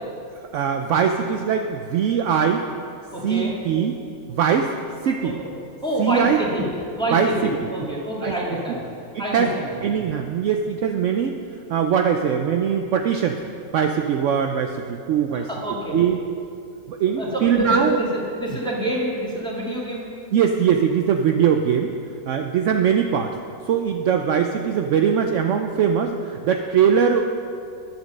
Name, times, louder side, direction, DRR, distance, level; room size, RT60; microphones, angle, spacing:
voice 1, 0.5-2.6 3.2-3.9 4.3-4.7 5.0-5.4 6.0-6.4 7.1-7.5 8.2-8.4 9.1-9.5 9.8-11.3 11.7-13.4 13.7-15.5 15.9-16.2 16.9-18.0 20.3-21.9 22.3-23.3 23.7-27.3, right 7 dB, 65° right, 4 dB, 0.8 m, -21 dB
voice 2, 3.1-3.5 5.2-5.3 5.8-6.7 6.9-8.8 9.2-9.7 15.3-16.0 17.1-18.1 18.4-20.1, right 1 dB, 5° left, -6 dB, 2.2 m, -26 dB
10.5 x 8.1 x 6.5 m, 2.5 s
omnidirectional pair, 1.5 m